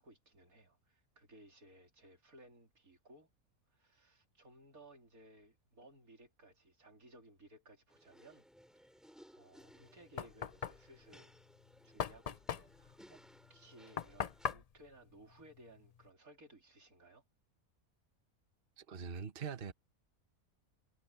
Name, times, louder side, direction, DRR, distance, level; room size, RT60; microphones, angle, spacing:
voice 1, 0.0-3.3 3.7-8.5 8.8-11.3 11.8-13.2 13.5-17.2, right 1 dB, 80° right, 3.9 m, -60 dB
sound 1, 7.9-14.5, equal, ahead, 2.6 m, -62 dB
Knock, 9.6-16.1, left 7 dB, 75° left, 0.3 m, -42 dB
voice 2, 18.8-19.7, right 6 dB, 40° right, 1.3 m, -43 dB
omnidirectional pair, 1.5 m